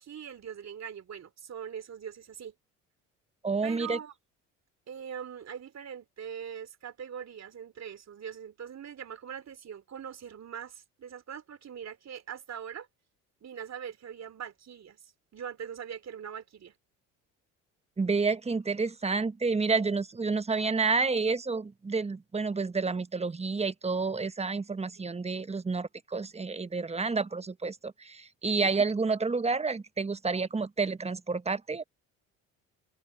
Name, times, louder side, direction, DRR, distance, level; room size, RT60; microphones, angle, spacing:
voice 1, 0.0-2.5 3.6-4.1 4.9-12.9 13.4-16.7 25.0-25.1 28.4-28.7, right 8 dB, 40° right, 3.0 m, -42 dB
voice 2, 3.4-4.0 18.0-31.8, right 4 dB, 15° right, 1.2 m, -29 dB
hypercardioid pair, 65°, 39 cm